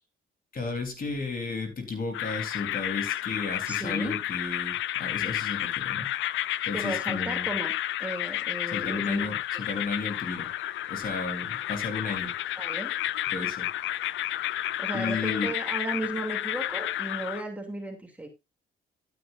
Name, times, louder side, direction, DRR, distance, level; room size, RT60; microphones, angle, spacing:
voice 1, 0.5-6.1 6.6-7.5 8.7-10.5 10.9-12.3 13.3-13.7 14.9-15.5, left 4 dB, 45° left, 3.8 m, -33 dB
sound 1, 2.1-17.4, left 13 dB, 75° left, 0.6 m, -31 dB
voice 2, 3.7-4.2 6.7-7.7 8.0-9.3 12.6-12.9 14.8-18.3, right 1 dB, 5° right, 2.9 m, -35 dB
12.0 x 10.0 x 2.6 m
cardioid pair, 90°, 20 cm